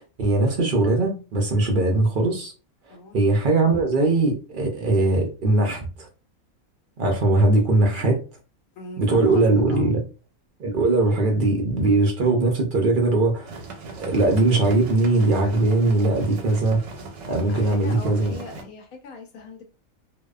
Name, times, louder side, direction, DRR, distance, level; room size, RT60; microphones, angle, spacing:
voice 1, 0.0-2.5 2.9-6.1 7.0-8.2 9.0-10.0 10.6-13.6 14.0-16.8 17.3-18.3, right 2 dB, 60° right, 0.5 m, -20 dB
voice 2, 8.8-9.9 17.5-19.6, left 3 dB, 85° left, 1.2 m, -39 dB
sound 1, 13.5-18.6, right 3 dB, 80° right, 1.1 m, -39 dB
2.7 x 2.1 x 2.2 m
omnidirectional pair, 1.5 m